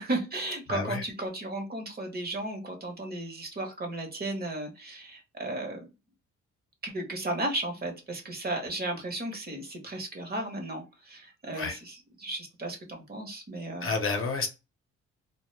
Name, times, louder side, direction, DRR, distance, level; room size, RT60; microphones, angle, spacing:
voice 1, 0.0-5.9 6.8-13.9, right 2 dB, 30° right, 0.9 m, -35 dB
voice 2, 0.7-1.0 11.5-11.8 13.8-14.5, left 4 dB, 45° left, 0.7 m, -30 dB
2.2 x 2.1 x 3.0 m
cardioid pair, 90°, 30 cm